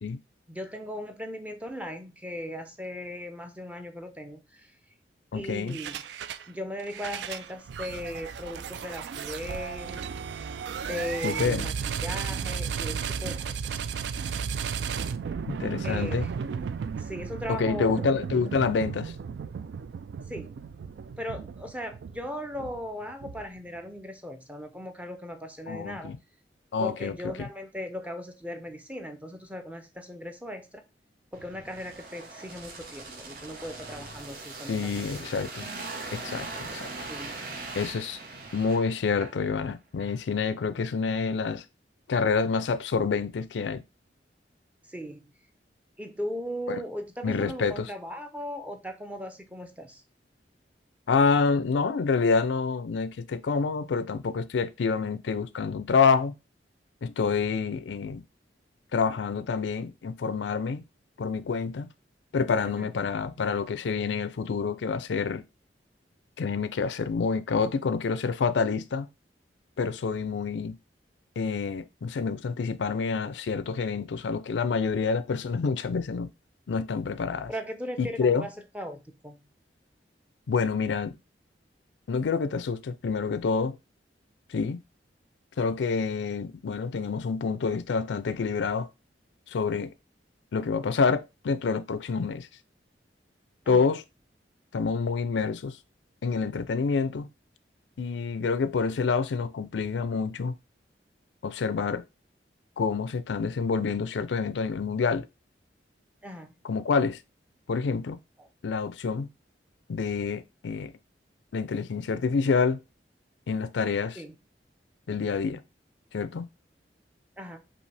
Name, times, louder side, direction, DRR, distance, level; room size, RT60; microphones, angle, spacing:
voice 1, 0.5-4.7 5.3-6.0 6.5-10.0 10.8-13.8 15.8-16.3 17.0-18.1 20.3-20.5 21.2-26.1 26.8-30.8 31.3-35.3 37.1-37.4 44.9-45.3 46.0-50.0 62.6-62.9 77.5-79.4 93.7-93.9 106.2-106.5 108.4-108.5 114.2-114.4 117.4-117.6, equal, 10° right, 0.5 m, -38 dB
voice 2, 5.3-5.8 11.2-11.7 15.5-16.3 17.5-19.1 25.7-26.2 26.7-27.5 34.7-35.7 36.1-36.9 37.8-38.2 38.5-41.6 42.1-43.8 46.7-46.8 47.2-47.9 51.1-56.3 57.0-58.2 58.9-60.8 61.2-61.9 62.3-65.4 66.4-69.1 69.8-70.8 71.4-76.3 76.7-77.5 78.0-78.5 80.5-81.1 82.1-83.8 84.5-84.8 85.6-88.9 89.5-89.9 90.5-92.5 93.7-94.0 94.7-95.8 96.2-97.3 98.0-100.5 101.4-102.0 102.8-105.3 106.6-107.2 107.7-108.2 108.6-109.3 109.9-110.9 111.5-112.8 113.5-114.2 115.1-115.6 116.1-116.5, left 5 dB, 85° left, 0.4 m, -27 dB
sound 1, 5.7-6.5 6.8-23.7, right 6 dB, 75° right, 0.3 m, -34 dB
sound 2, 31.3-39.7 40.0-40.2, right 3 dB, 55° right, 1.0 m, -41 dB
5.3 x 2.7 x 3.2 m
head